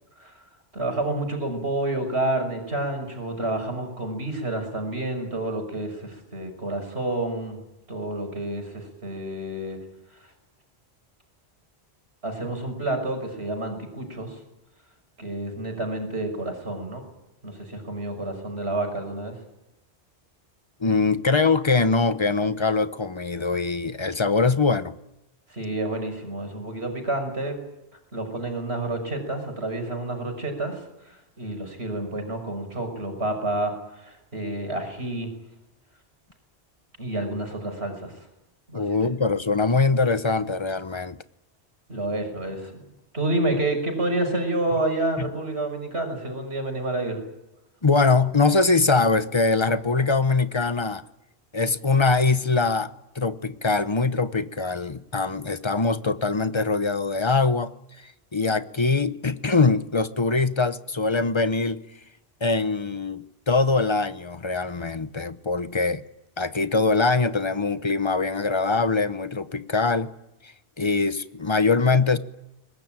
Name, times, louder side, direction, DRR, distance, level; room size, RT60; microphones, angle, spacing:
voice 1, 0.7-7.6 7.9-9.8 12.2-14.3 15.2-17.0 17.4-19.3 25.5-27.6 28.1-30.8 31.1-35.3 37.0-38.1 38.7-39.1 41.9-42.8 43.1-47.2, right 2 dB, 75° right, 6.2 m, -29 dB
voice 2, 20.8-24.9 38.7-41.2 45.2-45.3 47.8-51.0 51.5-57.7 58.3-61.8 62.4-66.0 66.4-70.1 70.8-72.2, left 3 dB, 30° left, 1.0 m, -23 dB
23.0 x 20.5 x 9.1 m
omnidirectional pair, 1.1 m